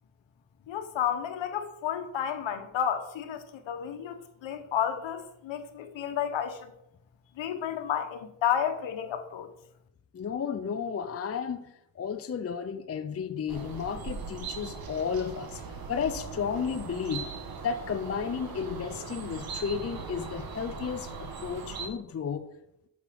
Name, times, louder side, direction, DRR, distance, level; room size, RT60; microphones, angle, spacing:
voice 1, 0.7-6.7 7.4-9.5, left 9 dB, 65° left, 1.3 m, -31 dB
voice 2, 10.1-17.3 17.6-22.5, left 6 dB, 30° left, 0.6 m, -33 dB
sound 1, 13.5-21.9, right 5 dB, 45° right, 1.6 m, -40 dB
8.1 x 6.4 x 5.2 m
cardioid pair, 80°, 48 cm